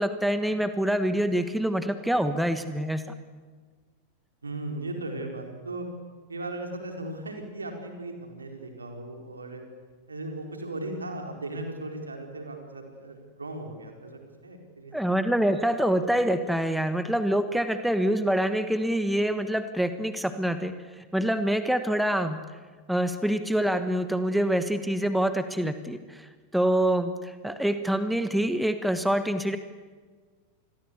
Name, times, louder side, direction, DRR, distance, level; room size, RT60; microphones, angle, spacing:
voice 1, 0.0-3.0 14.9-22.4 22.9-29.6, right 1 dB, ahead, 10 dB, 1.4 m, -26 dB
voice 2, 4.4-5.9 6.3-9.6 10.1-15.0, right 2 dB, 75° right, 3 dB, 4.5 m, -37 dB
28.0 x 21.0 x 8.3 m, 1.5 s
figure-of-eight pair, 90°, 0 cm